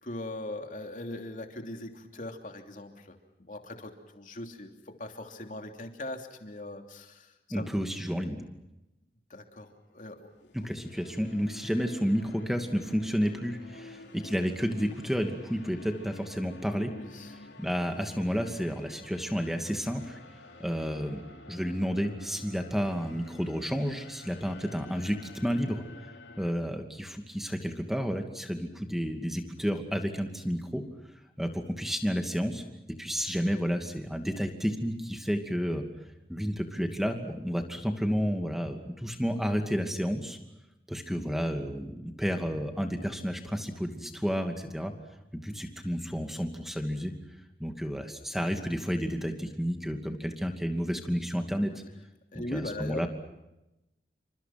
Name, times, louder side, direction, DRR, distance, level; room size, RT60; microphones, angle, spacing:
voice 1, 0.0-7.7 9.3-10.5 16.8-17.3 52.3-53.1, left 1 dB, 45° left, 4 dB, 3.1 m, -40 dB
voice 2, 7.5-8.4 10.5-16.9 17.6-20.2 20.6-25.8 26.4-30.8 31.4-32.6 33.0-35.8 36.3-40.4 40.9-44.9 45.3-47.1 47.6-51.7 52.5-53.1, equal, ahead, 5 dB, 2.5 m, -31 dB
sound 1, 10.3-26.5, left 2 dB, 85° left, 3.3 m, -50 dB
29.0 x 26.0 x 6.0 m, 0.93 s
head